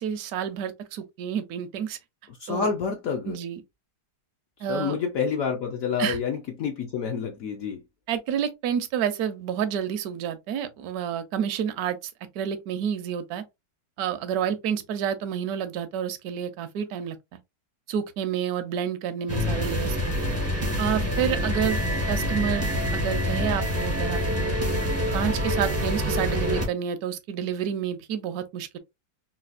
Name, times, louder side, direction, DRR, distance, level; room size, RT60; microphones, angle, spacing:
voice 1, 0.0-2.0 2.5-2.7 3.3-3.6 4.6-4.9 6.0-6.2 8.1-13.4 14.0-17.4 17.9-20.1 20.8-21.8 22.1-22.7 22.9-24.5 25.1-28.8, right 8 dB, 70° right, 1.1 m, -29 dB
voice 2, 2.4-3.4 4.7-7.8, left 6 dB, 65° left, 0.9 m, -28 dB
sound 1, 19.3-26.7, equal, 15° right, 0.4 m, -26 dB
4.0 x 2.3 x 2.4 m
omnidirectional pair, 1.8 m